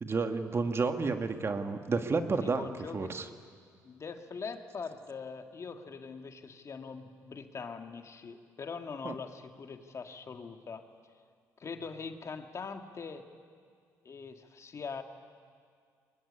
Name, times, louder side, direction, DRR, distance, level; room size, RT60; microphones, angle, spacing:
voice 1, 0.0-2.7 2.9-3.2 9.0-9.1, right 4 dB, 40° right, 7 dB, 1.8 m, -30 dB
voice 2, 2.4-3.4 3.8-10.8 11.6-13.2 14.0-15.0, left 5 dB, 45° left, 6 dB, 2.1 m, -42 dB
23.0 x 21.5 x 9.8 m, 2.1 s
cardioid pair, 80°, 7 cm